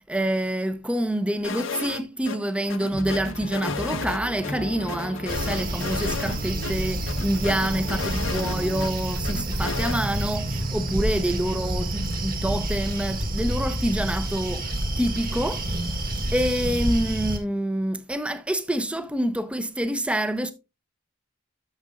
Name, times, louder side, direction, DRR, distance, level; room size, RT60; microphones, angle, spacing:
voice 1, 0.1-15.7 16.1-20.5, right 1 dB, 5° right, 0.6 m, -27 dB
sound 1, 1.4-2.0 2.2-2.4 2.7-4.5 4.9-6.4 6.6-6.7 7.1-8.9 9.2-10.0, left 4 dB, 75° left, 1.2 m, -33 dB
sound 2, 2.9-8.9, left 1 dB, 35° left, 1.0 m, -36 dB
sound 3, 5.3-17.4, right 1 dB, 45° right, 1.8 m, -28 dB
12.0 x 6.8 x 2.4 m
head